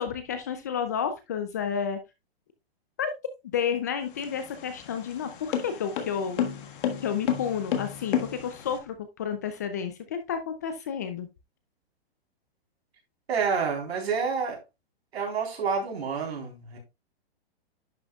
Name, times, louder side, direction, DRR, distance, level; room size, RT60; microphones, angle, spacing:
voice 1, 0.0-2.0 3.0-3.1 3.5-6.4 7.0-11.3, left 7 dB, 20° left, 0.3 m, -31 dB
sound 1, 4.0-8.8, left 9 dB, 55° left, 1.5 m, -31 dB
voice 2, 13.3-14.6 15.1-16.8, right 5 dB, 85° right, 3.7 m, -28 dB
10.5 x 5.9 x 2.3 m
hypercardioid pair, 160°, 31 cm